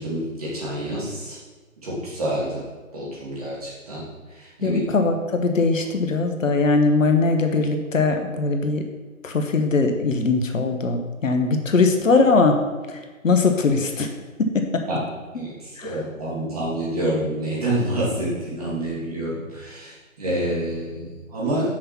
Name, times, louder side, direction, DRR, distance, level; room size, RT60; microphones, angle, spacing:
voice 1, 0.0-1.4 1.8-2.6 2.9-4.0 4.4-4.8 14.9-15.0 15.3-21.8, right 1 dB, 25° right, -7 dB, 2.4 m, -27 dB
voice 2, 4.6-8.8 9.2-12.6 13.2-14.1 14.4-14.8 15.8-16.0, left 3 dB, 65° left, 5 dB, 1.1 m, -20 dB
6.6 x 5.6 x 6.0 m, 1.3 s
hypercardioid pair, 175°, 42 cm